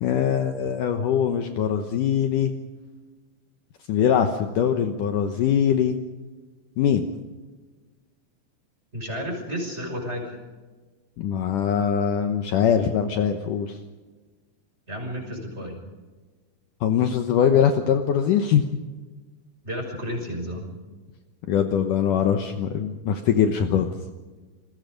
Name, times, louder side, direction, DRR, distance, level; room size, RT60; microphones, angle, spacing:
voice 1, 0.0-2.5 3.9-6.0 6.8-7.1 11.2-13.8 16.8-18.7 21.5-23.9, left 8 dB, 65° left, 6 dB, 2.4 m, -22 dB
voice 2, 8.9-10.4 14.9-15.8 19.6-20.7, equal, 15° right, 2 dB, 6.0 m, -32 dB
28.0 x 21.5 x 5.2 m, 1.3 s
omnidirectional pair, 4.3 m